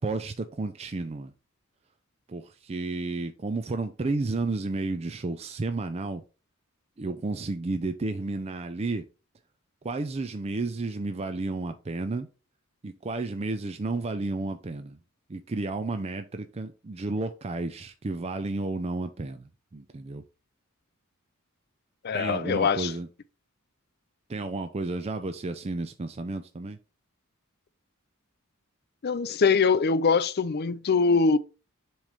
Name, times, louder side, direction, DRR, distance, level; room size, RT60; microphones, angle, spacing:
voice 1, 0.0-1.3 2.3-6.2 7.0-9.1 9.8-12.3 12.8-15.0 15.3-20.2 22.1-23.1 24.3-26.8, right 3 dB, 30° right, 0.4 m, -32 dB
voice 2, 22.0-22.9 29.0-31.4, left 5 dB, 50° left, 0.5 m, -23 dB
7.3 x 3.2 x 5.0 m
head